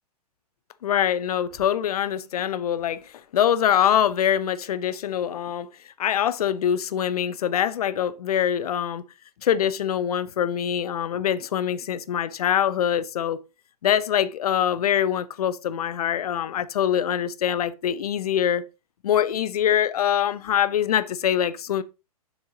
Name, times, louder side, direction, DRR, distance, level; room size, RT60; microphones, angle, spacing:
voice 1, 0.8-5.7 6.0-9.0 9.4-13.4 13.8-18.7 19.0-21.8, left 9 dB, 70° left, 0.6 m, -24 dB
7.4 x 6.1 x 2.8 m
hypercardioid pair, 125°, 20 cm